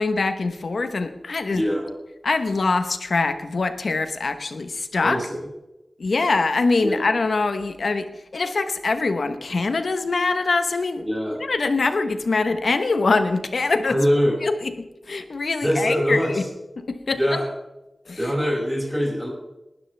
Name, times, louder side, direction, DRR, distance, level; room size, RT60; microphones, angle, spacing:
voice 1, 0.0-1.6 2.2-5.2 6.0-11.0 11.4-14.0 14.4-16.4 16.8-17.2 18.1-18.3, left 3 dB, 85° left, 10 dB, 1.0 m, -23 dB
voice 2, 1.5-1.9 5.0-5.4 6.8-7.0 11.0-11.4 13.9-14.3 15.6-16.4 17.2-17.5 18.2-19.3, equal, 10° right, -3 dB, 6.3 m, -23 dB
19.0 x 12.5 x 3.4 m, 0.97 s
cardioid pair, 45°, 0 cm